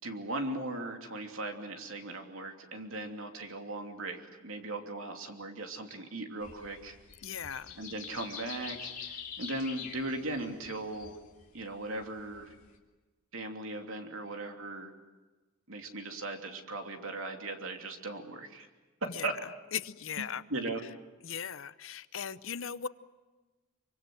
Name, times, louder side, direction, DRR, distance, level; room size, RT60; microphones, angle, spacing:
voice 1, 0.0-6.9 7.8-11.2 11.5-12.5 13.3-14.9 15.7-18.7 19.2-19.3 20.2-20.8, right 2 dB, 70° right, 4 dB, 3.0 m, -38 dB
sound 1, 6.4-12.8, left 7 dB, 35° left, 3.0 m, -46 dB
voice 2, 7.2-7.8 19.1-19.3 19.7-20.4 21.2-22.9, left 7 dB, 65° left, 15 dB, 0.8 m, -38 dB
25.5 x 25.0 x 7.8 m, 1.2 s
head